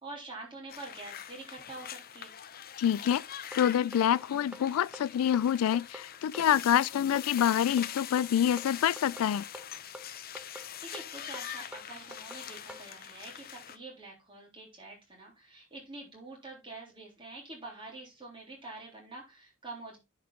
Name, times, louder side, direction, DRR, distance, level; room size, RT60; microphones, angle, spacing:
voice 1, 0.0-2.3 10.6-20.0, right 2 dB, 25° right, 3.4 m, -46 dB
sound 1, 0.7-13.8, left 10 dB, 45° left, 0.6 m, -43 dB
voice 2, 2.8-3.2 3.5-9.4, left 9 dB, 85° left, 0.3 m, -26 dB
sound 2, 3.1-12.9, equal, 5° right, 0.8 m, -47 dB
10.0 x 4.9 x 3.7 m
head